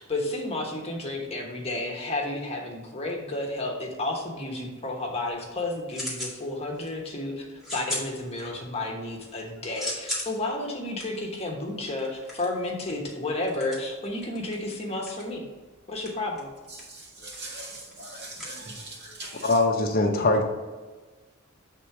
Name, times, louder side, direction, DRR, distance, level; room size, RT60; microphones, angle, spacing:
voice 1, 0.0-7.4 7.7-15.4 15.9-16.5, left 2 dB, 30° left, -1 dB, 1.1 m, -32 dB
sound 1, 5.3-6.4 6.7-7.2 7.6-8.8 9.2-19.2, left 1 dB, ahead, 1.9 m, -38 dB
voice 2, 16.7-19.5, right 2 dB, 50° right, -3 dB, 1.9 m, -41 dB
voice 3, 19.4-20.4, left 2 dB, 45° left, 3 dB, 0.7 m, -22 dB
7.3 x 3.7 x 4.7 m, 1.3 s
head